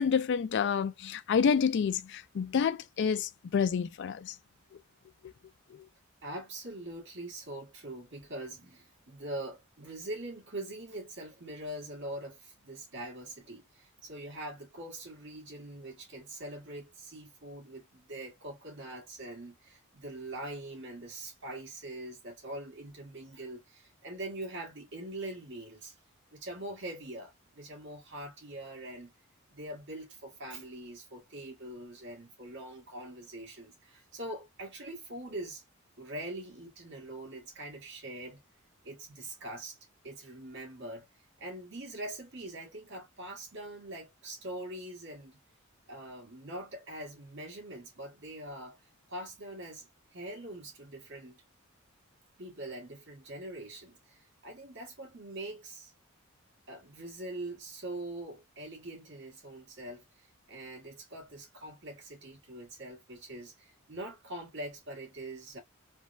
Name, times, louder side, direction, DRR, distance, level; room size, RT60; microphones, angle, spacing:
voice 1, 0.0-4.3, left 6 dB, 55° left, 0.3 m, -28 dB
voice 2, 6.2-25.9 26.3-29.1 29.5-35.6 36.0-38.4 38.8-39.8 40.0-41.1 41.4-45.4 45.9-48.8 49.1-51.4 52.4-55.9 56.7-65.6, right 1 dB, 60° right, 1.5 m, -43 dB
3.3 x 2.1 x 2.4 m
head